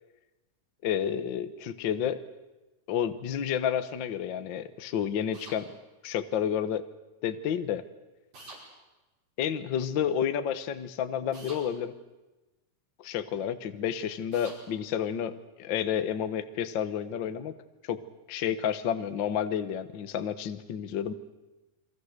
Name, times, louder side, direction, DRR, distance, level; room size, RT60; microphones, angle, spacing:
voice 1, 0.8-2.2 2.9-5.7 6.0-6.9 7.2-7.8 9.4-11.9 13.0-17.5 17.9-18.0 18.3-21.1, left 9 dB, 80° left, 10 dB, 1.0 m, -30 dB
sound 1, 5.3-5.6 8.3-8.6 11.3-11.6 14.3-14.6, right 2 dB, 60° right, 7.1 m, -46 dB
29.5 x 23.0 x 6.7 m, 1.1 s
omnidirectional pair, 3.9 m